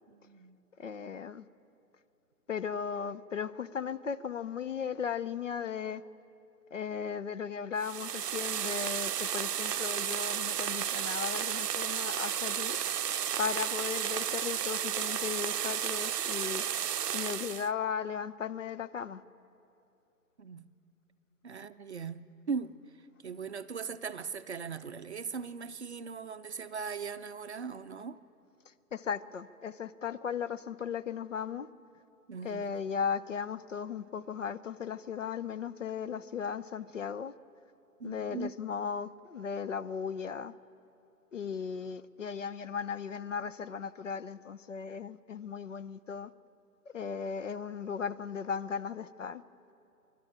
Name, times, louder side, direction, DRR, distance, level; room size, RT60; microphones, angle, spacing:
voice 1, 0.1-0.6 20.4-20.7 21.4-22.8 23.2-28.2 32.3-32.7 38.0-38.5, right 5 dB, 45° right, 0.6 m, -39 dB
voice 2, 0.8-1.4 2.5-6.0 6.7-12.8 13.4-16.6 17.1-19.2 28.9-31.7 32.4-37.3 38.0-40.5 41.3-46.3 46.9-49.4, left 7 dB, 55° left, 0.6 m, -36 dB
sound 1, 7.8-17.7, right 9 dB, 85° right, 0.6 m, -33 dB
26.5 x 12.0 x 8.8 m
figure-of-eight pair, 155°, 47 cm